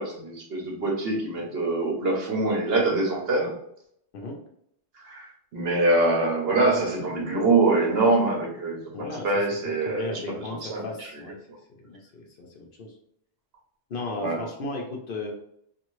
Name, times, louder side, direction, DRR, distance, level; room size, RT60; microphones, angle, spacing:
voice 1, 0.0-3.5 5.0-10.1 10.6-11.1 14.2-14.4, right 2 dB, 65° right, -1 dB, 1.0 m, -24 dB
voice 2, 8.9-9.4 9.8-11.4 11.7-12.9 13.9-15.3, left 2 dB, 60° left, 1 dB, 0.7 m, -35 dB
2.7 x 2.6 x 3.0 m, 0.72 s
omnidirectional pair, 1.2 m